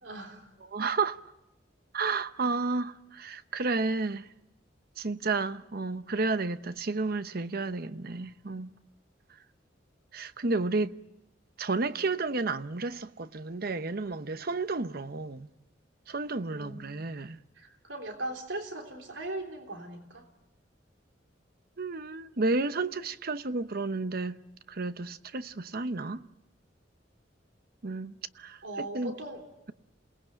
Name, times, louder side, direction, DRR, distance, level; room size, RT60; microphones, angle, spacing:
voice 1, 0.0-0.5 16.5-17.0 17.6-20.3 28.6-29.4, right 1 dB, 85° right, 3.5 m, -39 dB
voice 2, 0.7-1.2 1.9-4.3 5.0-8.7 10.1-10.9 11.6-15.5 16.1-17.4 21.8-24.4 24.7-26.2 27.8-29.1, right 3 dB, 55° right, 0.9 m, -31 dB
28.0 x 19.5 x 9.0 m
head